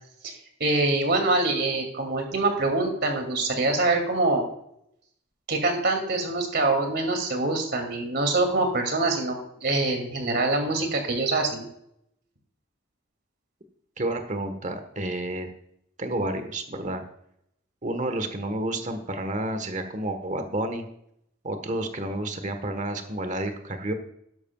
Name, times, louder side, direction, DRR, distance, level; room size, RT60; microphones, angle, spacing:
voice 1, 0.6-4.4 5.5-9.3 9.6-11.7, right 2 dB, 55° right, 4 dB, 2.5 m, -24 dB
voice 2, 14.0-15.5 16.0-17.0 17.8-20.9 21.4-23.9, right 1 dB, 40° right, 7 dB, 1.3 m, -30 dB
12.5 x 11.0 x 2.3 m, 0.75 s
head